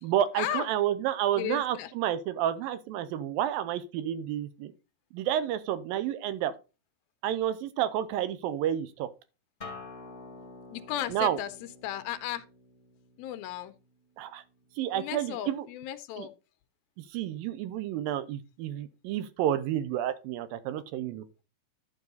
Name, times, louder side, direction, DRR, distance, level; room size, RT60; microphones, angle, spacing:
voice 1, 0.0-4.7 5.1-6.5 7.2-9.1 11.1-11.4 14.2-14.4 14.8-15.7 16.2-16.3 17.1-21.2, right 11 dB, 75° right, 2.4 m, -30 dB
voice 2, 1.4-1.9 10.7-11.5 11.8-12.4 13.2-13.7 14.9-16.3, left 12 dB, 85° left, 2.4 m, -35 dB
Acoustic guitar, 9.6-14.8, left 3 dB, 25° left, 0.9 m, -49 dB
11.5 x 5.4 x 4.0 m
omnidirectional pair, 4.4 m